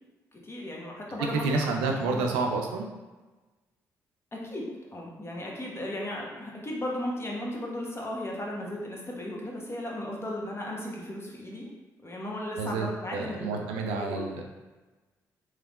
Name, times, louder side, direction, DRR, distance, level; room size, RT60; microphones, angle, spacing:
voice 1, 0.3-2.3 4.3-4.7 4.9-11.7 12.0-13.6 13.9-14.2, left 1 dB, 30° left, -2 dB, 0.9 m, -36 dB
voice 2, 1.2-2.9 12.6-14.4, right 3 dB, 80° right, 2 dB, 0.4 m, -29 dB
3.4 x 3.0 x 2.4 m, 1.2 s
hypercardioid pair, 45°, 9 cm